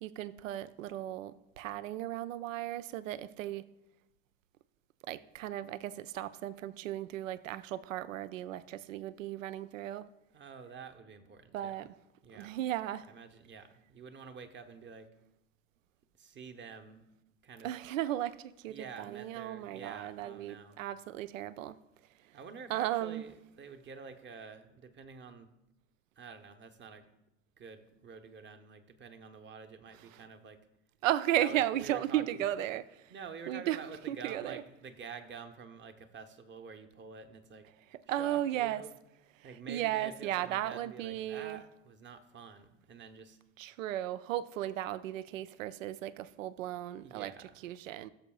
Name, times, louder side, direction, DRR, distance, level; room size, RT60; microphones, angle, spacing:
voice 1, 0.0-3.6 5.0-10.1 11.5-11.9 12.3-13.1 17.6-21.8 22.7-23.2 31.0-33.1 33.5-33.8 34.1-34.6 38.1-38.8 39.4-41.6 43.6-47.3 47.6-48.1, right 13 dB, 70° right, 17 dB, 0.5 m, -35 dB
voice 2, 10.3-11.9 12.2-12.6 13.1-15.1 16.2-17.1 17.4-17.7 18.7-20.8 22.3-25.5 26.2-27.1 27.6-30.6 31.4-32.4 33.1-37.7 38.1-38.9 39.4-43.4 47.0-47.6, right 5 dB, 25° right, 8 dB, 1.0 m, -48 dB
16.5 x 6.9 x 2.3 m, 0.88 s
figure-of-eight pair, 70°, 40 cm